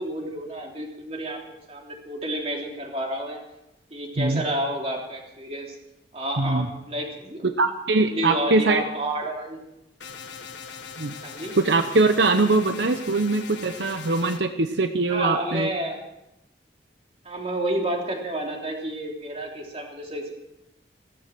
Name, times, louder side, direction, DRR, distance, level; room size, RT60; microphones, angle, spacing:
voice 1, 0.0-1.4 1.7-3.4 3.9-5.8 6.1-7.4 8.1-9.6 11.2-11.6 15.1-16.0 17.2-20.3, right 1 dB, 35° right, 0 dB, 3.3 m, -30 dB
voice 2, 6.4-6.7 7.4-8.8 11.0-11.1 11.6-15.7, right 3 dB, 75° right, 8 dB, 0.9 m, -22 dB
sound 1, 10.0-14.4, left 6 dB, 85° left, 1.5 m, -40 dB
16.5 x 14.5 x 6.1 m, 0.90 s
head